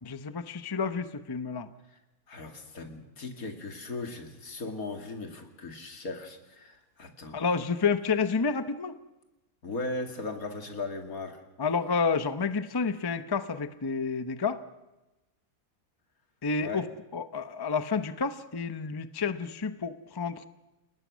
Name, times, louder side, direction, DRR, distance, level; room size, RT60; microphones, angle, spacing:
voice 1, 0.0-1.7 7.3-9.0 11.6-14.6 16.4-16.9 17.1-20.5, left 5 dB, 20° left, 11 dB, 0.7 m, -30 dB
voice 2, 2.3-7.5 9.6-11.4 16.6-16.8, left 3 dB, 75° left, 4 dB, 2.9 m, -38 dB
29.5 x 19.0 x 6.3 m, 1.0 s
omnidirectional pair, 1.5 m